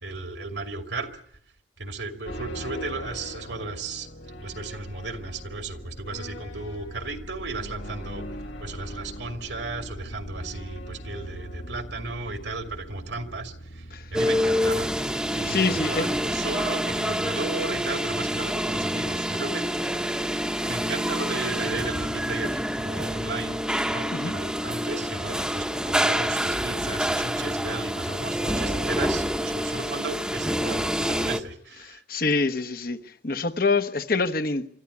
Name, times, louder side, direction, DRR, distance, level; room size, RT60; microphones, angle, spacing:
voice 1, 0.0-1.1 1.8-4.1 4.4-8.2 8.6-14.9 15.3-19.7 20.6-32.0, right 3 dB, 75° right, 2.5 m, -35 dB
sound 1, 2.2-16.0, equal, 80° left, 2.3 m, -41 dB
sound 2, 14.1-31.4, equal, 5° right, 0.9 m, -27 dB
voice 2, 15.5-16.1 24.1-24.4 32.1-33.0 33.2-34.7, left 3 dB, 50° left, 1.1 m, -25 dB
25.0 x 13.5 x 9.6 m
head